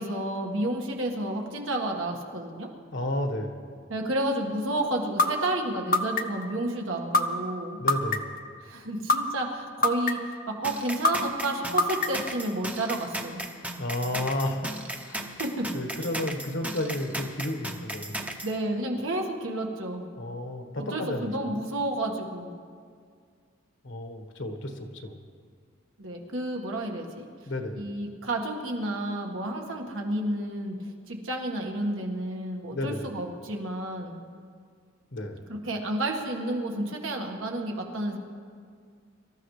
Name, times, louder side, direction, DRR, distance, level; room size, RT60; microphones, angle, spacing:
voice 1, 0.0-2.7 3.9-7.8 8.6-13.5 15.3-15.7 16.0-16.1 18.4-20.0 20.8-22.5 26.0-27.3 27.7-30.8 31.1-34.2 35.5-38.2, right 1 dB, 80° right, 1 dB, 1.7 m, -31 dB
voice 2, 2.9-3.7 7.8-8.4 13.8-14.8 15.0-15.2 15.7-18.2 20.2-21.6 23.8-25.2 27.5-27.9 32.7-33.1 35.1-35.5, left 1 dB, 65° left, 5 dB, 1.4 m, -32 dB
sound 1, 5.2-5.3 5.9-6.4 7.1-7.2 7.9-8.4 9.1-9.2 9.8-10.3 11.0-11.1 11.8-12.3, left 3 dB, 45° left, 0.7 m, -21 dB
sound 2, 10.6-18.5, right 1 dB, 5° right, 0.8 m, -36 dB
25.0 x 13.5 x 3.3 m, 2.1 s
head